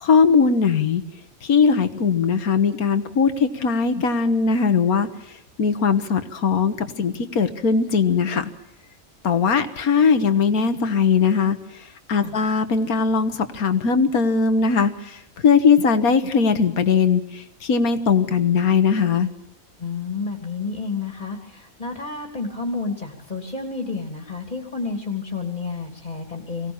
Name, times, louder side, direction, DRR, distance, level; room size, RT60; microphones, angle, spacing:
voice 1, 0.0-1.0 1.4-5.1 5.6-8.5 9.2-11.6 12.1-19.3, left 5 dB, 80° left, 10 dB, 1.8 m, -19 dB
voice 2, 19.8-26.7, left 4 dB, 30° left, 2 dB, 2.8 m, -30 dB
23.5 x 17.5 x 7.1 m, 0.84 s
omnidirectional pair, 1.5 m